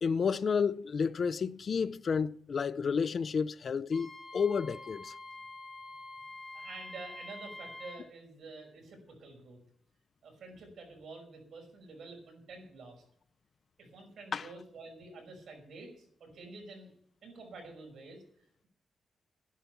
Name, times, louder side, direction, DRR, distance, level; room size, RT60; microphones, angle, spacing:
voice 1, 0.0-5.1 14.3-14.5, left 6 dB, 50° left, 0.5 m, -31 dB
Wind instrument woodwind instrument, 3.9-8.0, left 2 dB, 10° left, 2.6 m, -46 dB
voice 2, 6.5-9.6 10.2-13.0 13.8-16.9 17.2-18.2, right 3 dB, 75° right, 5.7 m, -49 dB
12.0 x 11.0 x 7.0 m
wide cardioid pair, 135°, 0 cm